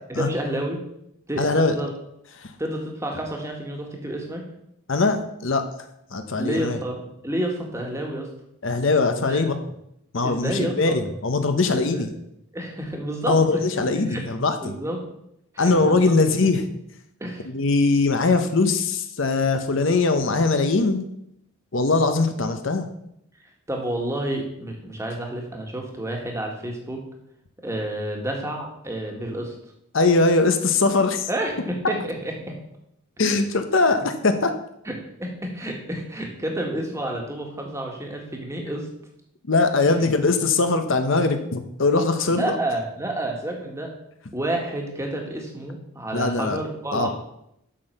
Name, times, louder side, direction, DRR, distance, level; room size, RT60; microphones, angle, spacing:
voice 1, 0.1-0.8 1.3-1.9 2.6-4.4 6.4-8.3 9.1-9.4 10.2-10.9 11.7-12.0 12.5-13.4 14.1-14.3 14.6-15.0 15.5-16.1 17.2-17.5 23.7-27.0 27.6-29.5 31.3-32.0 32.2-32.3 34.8-34.9 35.2-38.9 42.4-43.9 44.3-47.1, right 1 dB, 15° right, 1 dB, 1.5 m, -29 dB
voice 2, 1.4-1.7 2.4-2.5 4.9-5.6 6.1-6.8 8.6-9.6 10.1-12.1 13.3-14.7 15.6-16.7 17.5-21.0 21.7-22.9 29.9-31.3 33.2-34.5 39.5-42.6 46.1-46.6 46.9-47.1, left 3 dB, 55° left, 8 dB, 0.8 m, -21 dB
7.5 x 6.3 x 6.6 m, 0.79 s
head